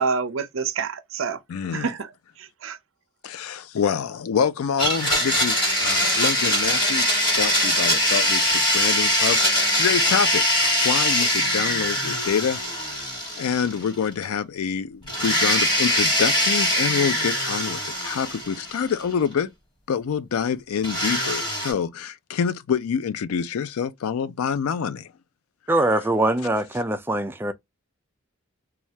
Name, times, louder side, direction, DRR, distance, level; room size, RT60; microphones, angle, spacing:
voice 1, 0.0-1.4 1.7-2.1 2.4-2.8, right 5 dB, 65° right, 0.5 m, -27 dB
voice 2, 1.5-1.9 3.2-7.0 7.4-12.6 13.4-19.5 19.9-25.1, left 7 dB, 85° left, 0.4 m, -26 dB
Domestic sounds home sounds, 4.8-14.0 14.2-14.3 15.1-19.0 20.8-21.7, equal, 20° left, 1.5 m, -22 dB
voice 3, 25.7-27.5, right 1 dB, 10° right, 0.3 m, -22 dB
3.2 x 2.3 x 2.7 m
head